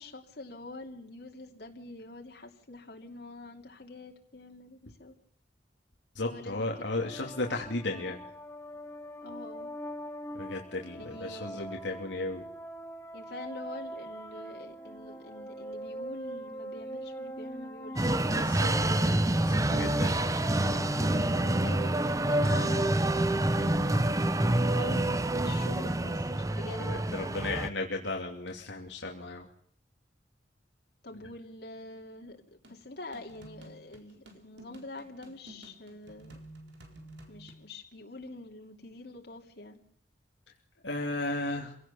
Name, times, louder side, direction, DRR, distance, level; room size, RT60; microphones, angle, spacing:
voice 1, 0.0-5.1 6.2-6.7 7.0-7.3 7.9-8.1 9.2-9.7 10.9-11.6 13.1-18.5 20.8-23.0 23.6-27.0 31.0-36.4 37.3-39.8, left 2 dB, 65° left, 1 dB, 2.8 m, -45 dB
voice 2, 6.1-8.2 10.3-12.4 18.3-20.3 26.8-29.5 40.8-41.7, left 2 dB, 90° left, 0 dB, 2.7 m, -35 dB
sound 1, 6.7-22.1, equal, 15° left, 1.8 m, -43 dB
sound 2, 18.0-27.7, right 1 dB, 20° right, 0.8 m, -27 dB
sound 3, 32.6-37.6, right 1 dB, 75° right, 4.1 m, -51 dB
26.0 x 17.5 x 7.1 m, 0.64 s
head